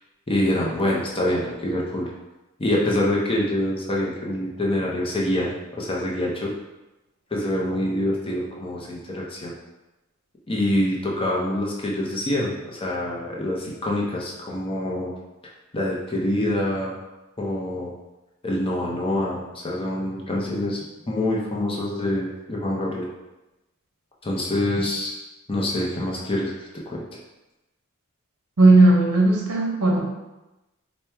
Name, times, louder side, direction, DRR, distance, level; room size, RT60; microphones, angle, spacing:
voice 1, 0.3-2.1 2.6-6.5 7.3-9.5 10.5-15.1 15.7-17.0 17.4-17.9 18.4-23.1 24.2-25.1 25.5-26.5 26.9-27.2, left 1 dB, 25° left, -3 dB, 0.6 m, -25 dB
voice 2, 28.6-30.0, right 2 dB, 85° right, -1 dB, 0.9 m, -16 dB
4.4 x 2.2 x 3.4 m, 1.0 s
head